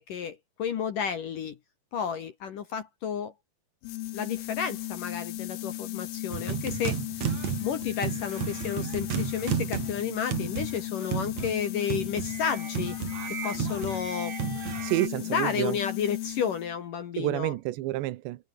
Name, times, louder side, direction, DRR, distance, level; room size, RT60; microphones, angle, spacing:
voice 1, 0.0-1.6 1.9-3.3 4.1-7.0 7.6-13.0 13.3-14.4 15.2-17.6, left 7 dB, 60° left, 2.5 m, -32 dB
sound 1, 3.8-16.8, left 15 dB, 90° left, 4.2 m, -36 dB
sound 2, 6.3-15.1, right 9 dB, 50° right, 2.2 m, -33 dB
voice 2, 14.8-15.7 17.2-18.4, right 17 dB, 75° right, 2.9 m, -29 dB
omnidirectional pair, 5.8 m